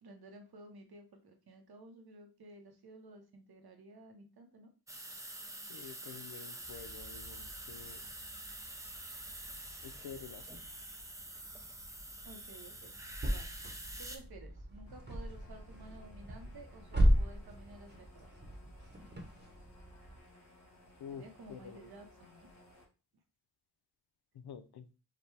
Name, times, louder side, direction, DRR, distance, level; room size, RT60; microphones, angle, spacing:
voice 1, 0.0-4.7 12.2-13.0 13.2-13.5 14.0-18.3 21.1-22.5, right 2 dB, 75° right, 4 dB, 1.0 m, -54 dB
sound 1, 4.9-14.2, right 1 dB, 10° right, 0.5 m, -47 dB
voice 2, 5.7-8.1 9.8-10.6 21.0-21.9 24.3-24.9, left 7 dB, 85° left, 12 dB, 0.6 m, -49 dB
sound 2, 6.6-20.2, equal, 25° right, 0.9 m, -37 dB
sound 3, 14.9-22.8, left 1 dB, 65° left, 2.0 m, -60 dB
5.0 x 2.2 x 3.3 m, 0.32 s
wide cardioid pair, 120°, 38 cm